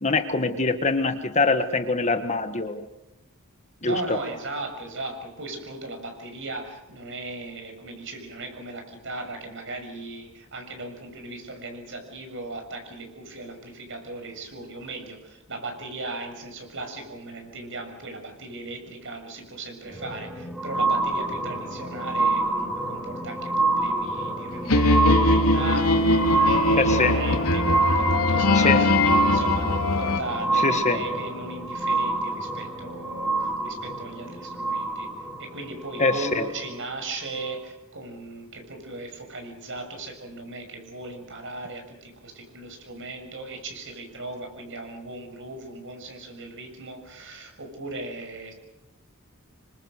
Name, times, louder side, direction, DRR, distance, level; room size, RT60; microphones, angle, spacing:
voice 1, 0.0-2.9 3.8-4.2 26.8-27.2 28.5-28.8 30.6-31.0 36.0-36.4, left 3 dB, 30° left, 8 dB, 1.6 m, -24 dB
voice 2, 3.8-35.1 35.4-48.5, right 2 dB, 55° right, 5 dB, 6.9 m, -37 dB
sound 1, 19.8-36.7 37.4-37.5, right 2 dB, 5° right, 4.9 m, -27 dB
sound 2, 24.7-30.2, left 2 dB, 85° left, 3.2 m, -21 dB
28.5 x 25.0 x 6.6 m, 0.90 s
head